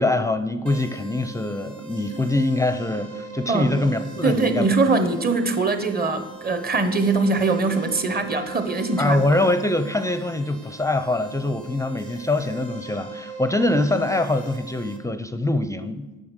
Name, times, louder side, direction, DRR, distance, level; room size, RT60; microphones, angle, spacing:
voice 1, 0.0-4.7 9.0-16.1, left 2 dB, 10° left, 10 dB, 0.5 m, -23 dB
sound 1, 0.7-15.0, right 5 dB, 80° right, 1.7 m, -41 dB
voice 2, 4.2-9.2, right 3 dB, 30° right, 9 dB, 1.1 m, -22 dB
8.7 x 6.8 x 6.4 m, 1.1 s
cardioid pair, 90°, 30 cm